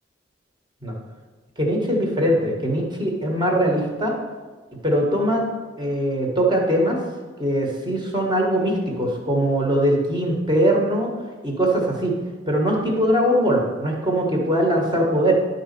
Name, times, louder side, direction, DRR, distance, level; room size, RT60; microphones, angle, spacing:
voice 1, 1.6-4.1 4.8-5.5 5.8-7.0 7.4-11.1 11.4-12.2 12.5-15.3, equal, 25° right, -1 dB, 1.7 m, -21 dB
11.0 x 4.2 x 6.8 m, 1.3 s
head